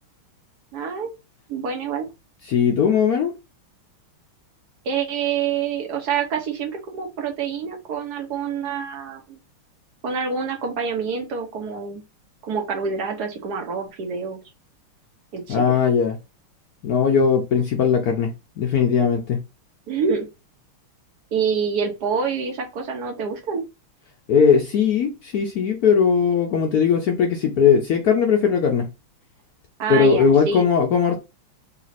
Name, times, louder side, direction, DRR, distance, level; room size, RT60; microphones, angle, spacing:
voice 1, 0.7-1.1 1.5-2.1 4.8-9.4 10.0-12.0 12.4-14.4 15.3-15.6 19.9-20.3 21.3-23.6 29.8-30.7, right 6 dB, 60° right, 1.2 m, -26 dB
voice 2, 2.4-3.3 15.5-16.2 16.8-18.3 18.6-19.4 24.3-28.9 29.9-31.2, left 6 dB, 80° left, 0.8 m, -19 dB
4.1 x 2.4 x 4.0 m
omnidirectional pair, 2.4 m